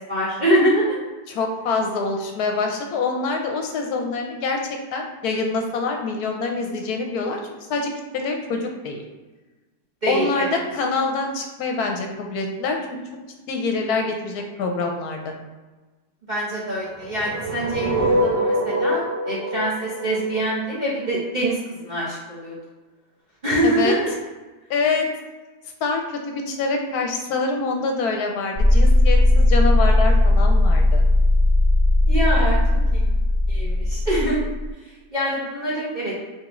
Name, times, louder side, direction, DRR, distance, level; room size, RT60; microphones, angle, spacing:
voice 1, 0.1-0.9 10.0-10.5 16.3-22.6 23.4-24.1 32.1-32.6 32.9-33.0 33.5-34.4 35.1-36.1, right 1 dB, 40° right, -7 dB, 0.7 m, -24 dB
voice 2, 1.3-4.6 4.9-7.4 7.7-9.0 10.1-13.0 13.5-15.3 23.6-23.9 24.7-25.1 25.8-31.0, left 3 dB, 75° left, 2 dB, 1.1 m, -25 dB
sound 1, 17.0-21.1, equal, 70° right, 1.6 m, -24 dB
sound 2, 28.6-34.7, left 1 dB, 20° left, 0.7 m, -17 dB
4.3 x 3.7 x 2.9 m, 1.2 s
omnidirectional pair, 1.8 m